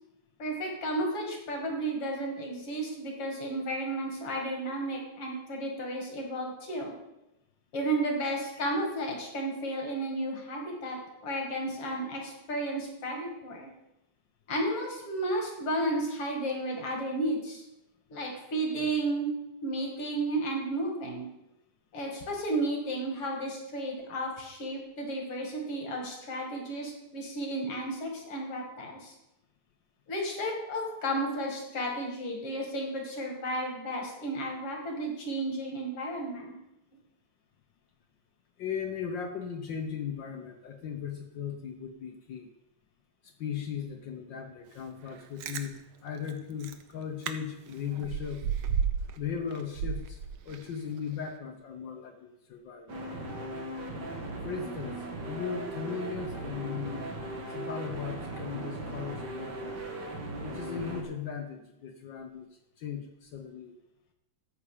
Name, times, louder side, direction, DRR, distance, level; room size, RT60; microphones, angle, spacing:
voice 1, 0.4-6.9 7.7-13.7 14.5-17.6 18.1-19.3 19.6-21.3 21.9-29.1 30.1-36.6, right 1 dB, 55° left, 1 dB, 2.9 m, -33 dB
voice 2, 38.6-42.5 43.4-48.4 49.2-50.2 50.4-52.9 54.4-55.0 55.2-57.1 57.5-59.9 60.4-62.5 62.8-63.7, left 7 dB, 90° left, 4 dB, 1.0 m, -37 dB
Chewing mastication, 45.2-45.7 46.3-46.4 46.6-46.8 47.2-47.3 47.7-49.2 49.5-50.7 51.1-51.2, right 7 dB, 80° right, 1.2 m, -32 dB
sound 1, 52.9-61.0, right 2 dB, 40° right, 1.9 m, -38 dB
13.5 x 8.6 x 5.0 m, 0.91 s
omnidirectional pair, 3.4 m